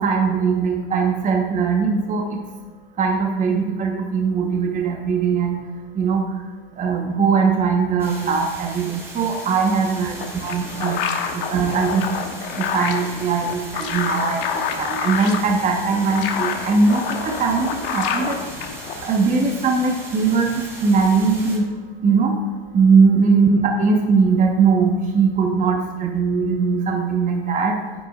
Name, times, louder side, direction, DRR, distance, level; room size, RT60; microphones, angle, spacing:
voice 1, 0.0-2.2 3.0-5.6 5.9-6.2 6.8-11.0 11.3-12.0 12.5-18.4 19.1-21.7 22.0-22.4 22.7-27.8, right 5 dB, 25° right, 1 dB, 1.3 m, -20 dB
sound 1, 8.0-21.6, right 1 dB, 10° right, 2.2 m, -38 dB
sound 2, 9.9-19.2, left 7 dB, 65° left, 1.2 m, -28 dB
10.5 x 9.0 x 2.5 m, 1.4 s
hypercardioid pair, 115°, 30 cm